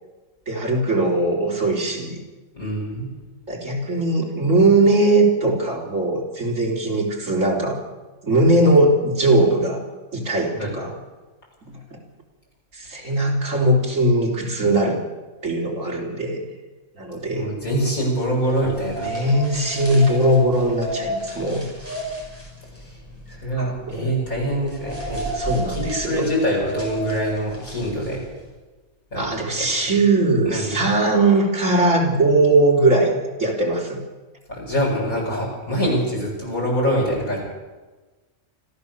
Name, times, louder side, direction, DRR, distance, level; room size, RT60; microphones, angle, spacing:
voice 1, 0.5-2.2 3.5-7.8 8.2-9.8 10.1-10.9 11.6-12.0 12.7-15.0 15.4-16.4 17.0-17.5 19.0-21.6 23.6-24.1 25.3-26.3 29.2-33.1 33.4-34.0, right 2 dB, 65° right, -2 dB, 4.2 m, -20 dB
voice 2, 2.5-3.2 10.6-10.7 17.3-19.1 22.8-23.0 23.3-25.3 25.7-28.2 29.1-29.3 29.6-29.7 30.5-30.9 34.5-37.4, equal, 85° left, -3 dB, 8.2 m, -24 dB
sound 1, 18.5-28.4, equal, 10° left, 5.6 m, -33 dB
25.5 x 14.5 x 7.0 m, 1.2 s
omnidirectional pair, 1.4 m